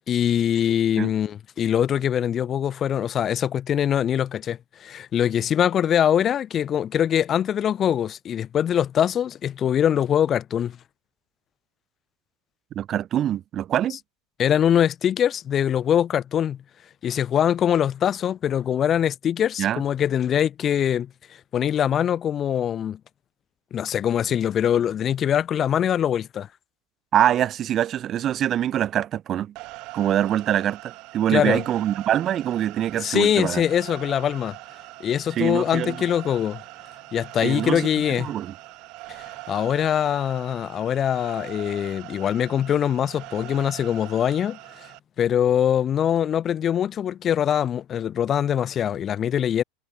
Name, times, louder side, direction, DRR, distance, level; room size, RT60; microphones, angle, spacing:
voice 1, 0.1-10.8 14.4-16.6 17.0-21.1 21.5-23.0 23.7-26.5 31.3-31.6 33.0-34.6 35.0-36.6 37.1-38.3 39.5-44.6 45.2-49.6, left 9 dB, 35° left, 0.4 m, -23 dB
voice 2, 12.7-14.0 19.6-19.8 27.1-29.5 29.9-33.6 35.4-36.0 37.4-38.5, right 11 dB, 40° right, 0.7 m, -24 dB
sound 1, 29.6-45.0, right 22 dB, 55° right, 6.1 m, -41 dB
hypercardioid pair, 110°, 0 cm